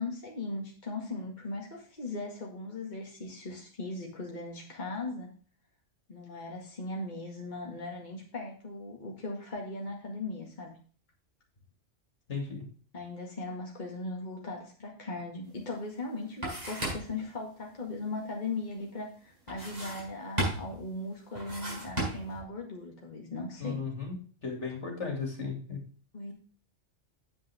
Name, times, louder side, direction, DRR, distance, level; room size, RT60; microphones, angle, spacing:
voice 1, 0.0-5.3 6.1-10.7 12.9-23.8 26.1-26.3, left 2 dB, 40° left, -1 dB, 2.1 m, -38 dB
voice 2, 12.3-12.6 23.6-24.2 24.4-25.8, left 5 dB, 70° left, 2 dB, 3.0 m, -35 dB
sound 1, 15.6-15.7 16.0-17.2 19.5-20.1 20.4-20.8 21.3-22.4, right 1 dB, 35° right, 5.6 m, -34 dB
9.2 x 8.2 x 3.5 m, 0.41 s
omnidirectional pair, 1.2 m